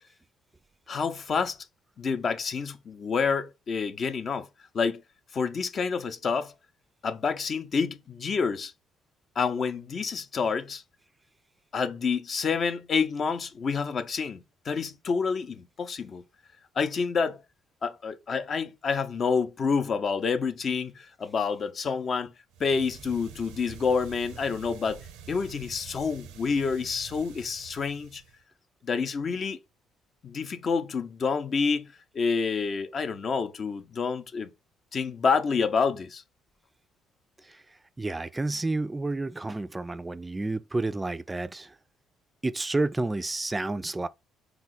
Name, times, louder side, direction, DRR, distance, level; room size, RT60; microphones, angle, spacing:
voice 1, 0.9-1.6 2.0-4.5 4.7-5.0 5.3-6.5 7.0-8.7 9.4-10.8 11.7-16.2 16.8-17.4 17.8-22.3 22.6-25.0 25.3-28.2 28.8-29.6 30.2-34.5 34.9-36.2, left 5 dB, 50° left, 0.6 m, -28 dB
sound 1, 22.5-28.4, right 6 dB, 80° right, 0.5 m, -47 dB
voice 2, 38.0-41.7 42.4-44.1, right 2 dB, 20° right, 0.3 m, -30 dB
3.8 x 2.3 x 4.1 m
hypercardioid pair, 55°, 0 cm